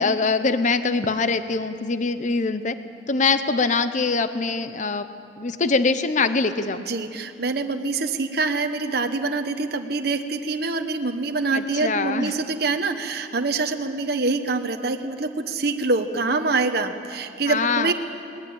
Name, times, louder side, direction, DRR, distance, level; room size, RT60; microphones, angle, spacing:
voice 1, 0.0-2.7 3.1-5.1 5.4-6.8 11.5-12.3 17.5-17.9, left 4 dB, 40° left, 11 dB, 0.7 m, -23 dB
voice 2, 6.9-17.9, right 3 dB, 55° right, 6 dB, 1.1 m, -25 dB
22.0 x 20.0 x 8.8 m, 2.5 s
head